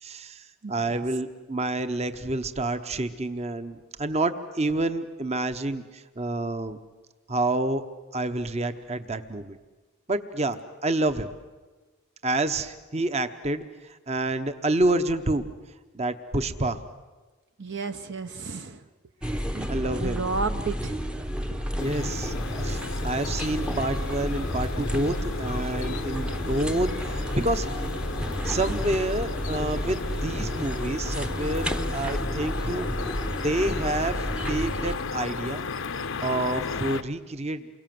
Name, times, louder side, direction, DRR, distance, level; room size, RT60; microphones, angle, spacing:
voice 1, 0.0-6.8 7.3-7.8 8.1-9.6 10.1-11.3 12.2-15.4 15.9-16.8 19.7-20.2 21.8-22.3 22.6-27.7 28.4-32.9 33.4-35.7 36.2-37.7, right 2 dB, 30° right, 10 dB, 1.0 m, -28 dB
voice 2, 0.6-1.0 17.6-18.9 19.5-19.7 19.9-21.0, right 4 dB, 50° right, 8 dB, 0.8 m, -32 dB
sound 1, 19.2-35.0, equal, 5° right, 0.8 m, -31 dB
sound 2, 21.8-37.0, left 4 dB, 60° left, 0.7 m, -34 dB
29.0 x 23.0 x 7.7 m, 1.3 s
head